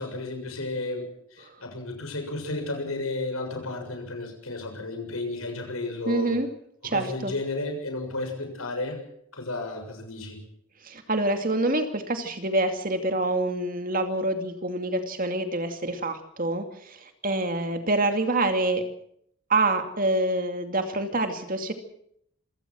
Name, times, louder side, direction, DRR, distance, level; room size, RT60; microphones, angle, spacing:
voice 1, 0.0-6.4 6.8-9.0 9.3-10.4, left 2 dB, 85° left, 4 dB, 6.9 m, -33 dB
voice 2, 6.1-6.5 6.8-7.3 10.9-17.0 17.2-18.8 19.5-21.7, right 2 dB, 40° right, 7 dB, 2.5 m, -26 dB
26.5 x 17.0 x 6.3 m, 0.70 s
head